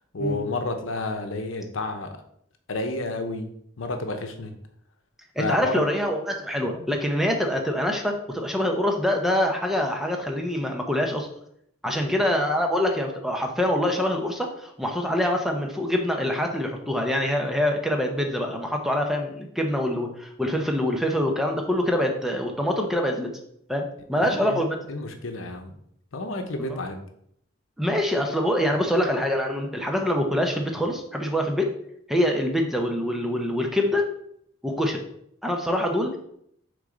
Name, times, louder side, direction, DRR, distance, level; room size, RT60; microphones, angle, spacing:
voice 1, 0.1-2.2 2.7-4.5 5.4-5.8 11.8-12.1 24.1-25.8 26.1-27.0, left 2 dB, 80° left, 6 dB, 0.8 m, -31 dB
voice 2, 5.4-11.3 11.8-23.3 23.7-24.8 26.6-26.8 27.8-31.7 32.1-34.1 34.6-35.0 35.4-36.2, left 1 dB, ahead, 2 dB, 0.7 m, -25 dB
6.4 x 3.8 x 3.9 m, 0.71 s
head